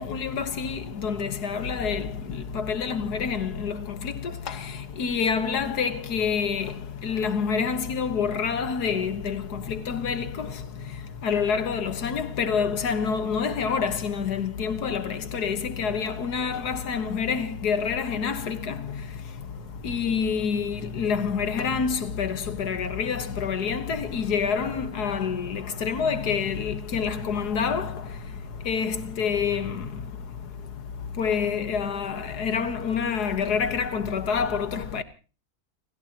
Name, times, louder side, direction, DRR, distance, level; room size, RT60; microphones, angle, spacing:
voice 1, 0.0-2.0 2.5-3.8 5.0-6.7 7.0-9.4 9.7-10.3 11.2-18.6 19.8-27.9 28.7-29.7 31.2-35.0, left 6 dB, 80° left, 2.0 m, -27 dB
30.0 x 16.0 x 3.0 m
omnidirectional pair, 1.7 m